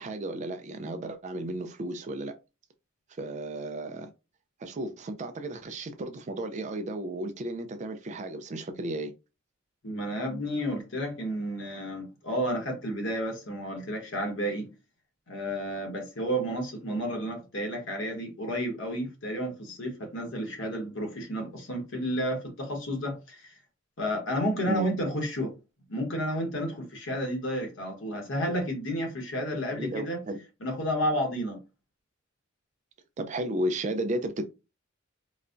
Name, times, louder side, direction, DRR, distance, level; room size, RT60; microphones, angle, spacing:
voice 1, 0.0-2.3 3.2-4.1 4.6-9.1 24.7-24.9 29.7-30.4 33.2-34.5, right 1 dB, 35° right, 0.4 m, -33 dB
voice 2, 9.8-14.7 15.3-23.5 24.0-25.5 25.9-30.2 30.6-31.6, equal, 65° left, 1.1 m, -31 dB
4.0 x 2.2 x 2.5 m
head